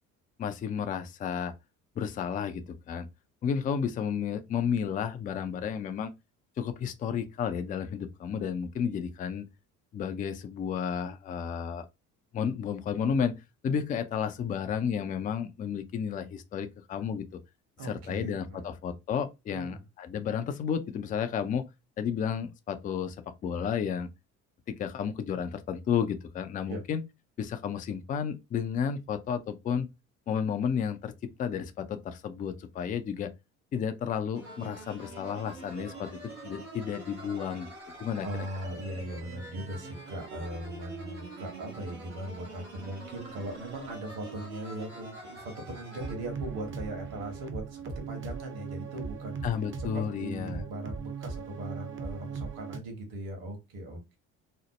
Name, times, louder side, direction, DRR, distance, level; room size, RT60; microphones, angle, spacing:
voice 1, 0.4-1.5 2.0-3.1 3.4-6.1 6.6-9.5 9.9-11.9 12.3-13.3 13.6-17.3 17.8-21.7 22.0-23.2 23.4-24.1 24.7-27.0 27.4-29.9 30.3-33.3 33.7-36.2 36.4-37.7 38.0-38.3 49.4-50.6, left 7 dB, 20° left, 0.3 m, -32 dB
voice 2, 17.8-18.6 19.5-19.8 26.7-26.8 38.2-49.4 49.8-54.2, right 1 dB, 55° right, 1.3 m, -39 dB
sound 1, 34.3-46.1, right 2 dB, 85° right, 1.2 m, -45 dB
sound 2, 46.0-52.8, right 5 dB, 30° right, 0.7 m, -39 dB
3.0 x 2.0 x 3.0 m
figure-of-eight pair, 55°, 43 cm